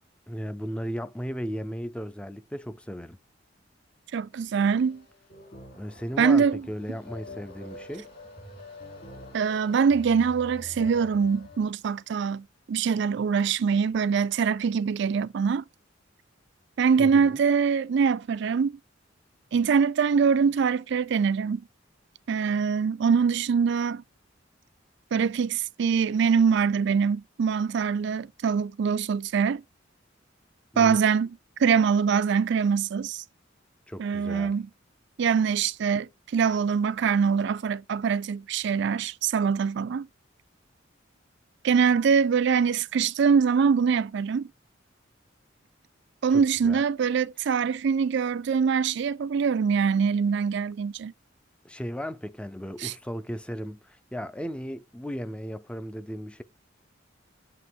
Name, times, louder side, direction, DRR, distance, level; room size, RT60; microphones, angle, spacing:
voice 1, 0.3-3.2 5.8-8.1 17.0-17.4 30.7-31.0 33.9-34.5 46.3-46.8 51.6-56.4, equal, 5° left, 0.4 m, -36 dB
voice 2, 4.1-5.0 6.2-6.6 9.3-15.6 16.8-18.8 19.5-21.6 22.3-24.0 25.1-29.6 30.8-33.2 34.0-34.7 35.2-40.1 41.6-44.5 46.2-51.1 52.8-52.9, right 6 dB, 65° right, 0.4 m, -24 dB
sound 1, 4.6-11.6, left 2 dB, 50° left, 2.9 m, -45 dB
7.7 x 2.9 x 4.5 m
head